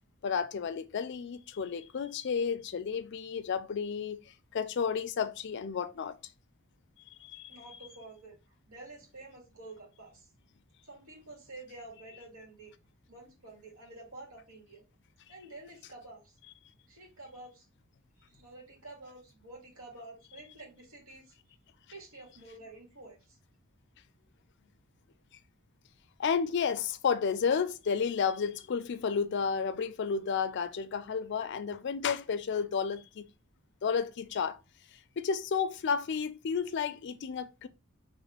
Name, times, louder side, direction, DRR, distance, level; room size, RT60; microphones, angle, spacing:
voice 1, 0.2-4.2 4.5-6.1 7.2-7.5 26.2-33.3 33.8-34.6 35.2-37.7, left 6 dB, 55° left, 0.4 m, -32 dB
voice 2, 7.5-10.3 10.8-12.7 13.1-14.8 15.3-16.4 16.9-17.7 18.2-21.3 21.9-23.4, right 2 dB, 80° right, 2.1 m, -49 dB
4.1 x 3.1 x 3.4 m
head